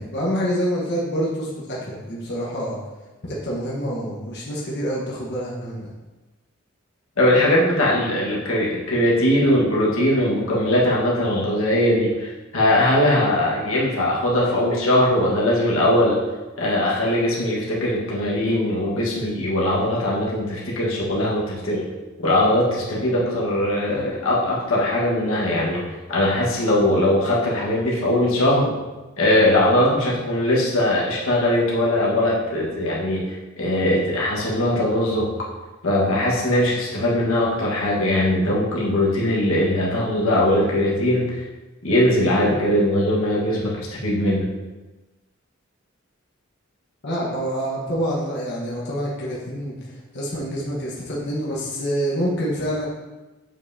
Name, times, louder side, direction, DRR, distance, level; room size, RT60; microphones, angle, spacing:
voice 1, 0.0-2.8 3.3-5.9 47.0-52.9, equal, 55° left, -5 dB, 1.3 m, -27 dB
voice 2, 7.2-16.2 16.6-21.9 22.2-28.7 29.2-35.5 35.8-41.4 41.8-44.5, left 1 dB, 85° left, -4 dB, 1.5 m, -20 dB
7.3 x 5.5 x 2.8 m, 1.1 s
head